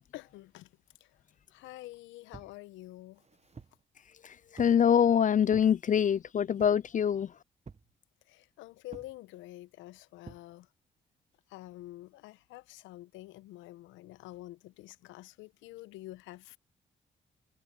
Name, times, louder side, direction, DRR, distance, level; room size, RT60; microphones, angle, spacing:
voice 1, 0.1-0.7 1.0-1.2 1.5-3.2 4.6-4.7 8.3-10.7 11.5-16.6, left 17 dB, 80° left, 1.1 m, -48 dB
sound 1, 2.3-2.6 3.2-3.8 4.6-4.9 5.5-5.7 6.6-6.9 7.7-7.9 8.9-9.2 10.3-10.5, right 5 dB, 35° right, 1.4 m, -49 dB
voice 2, 4.6-7.3, left 8 dB, 40° left, 0.5 m, -24 dB
open air
hypercardioid pair, 45°, 20 cm